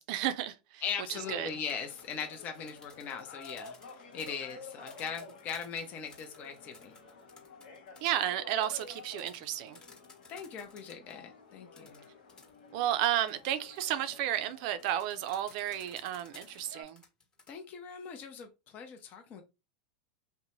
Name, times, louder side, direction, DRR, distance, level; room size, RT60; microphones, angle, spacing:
voice 1, 0.0-0.8 1.1-1.5 8.0-9.8 12.7-17.0, right 11 dB, 60° right, 0.4 m, -32 dB
voice 2, 0.8-3.7 4.1-6.9 10.3-12.0 17.5-19.4, left 7 dB, 40° left, 0.6 m, -40 dB
sound 1, 1.1-16.8, left 3 dB, 80° left, 1.0 m, -52 dB
sound 2, 1.5-11.2 11.7-17.5, left 4 dB, 20° left, 1.0 m, -56 dB
2.6 x 2.1 x 2.9 m
hypercardioid pair, 110°, 5 cm